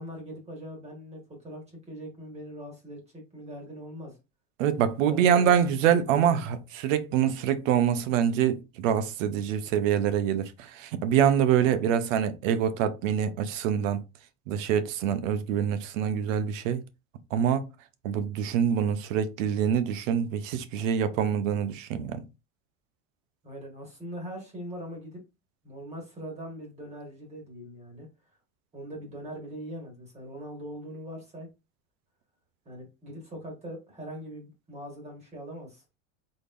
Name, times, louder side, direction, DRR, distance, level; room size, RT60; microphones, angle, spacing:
voice 1, 0.0-4.2 5.1-5.5 6.1-6.5 11.6-12.1 23.4-25.2 25.6-28.1 28.7-31.5 32.6-35.8, equal, 15° right, 1.5 m, -41 dB
voice 2, 4.6-14.0 14.5-16.8 17.3-17.6 18.0-22.2, right 8 dB, 90° right, 0.8 m, -25 dB
4.0 x 3.3 x 2.5 m
supercardioid pair, 160°, 37 cm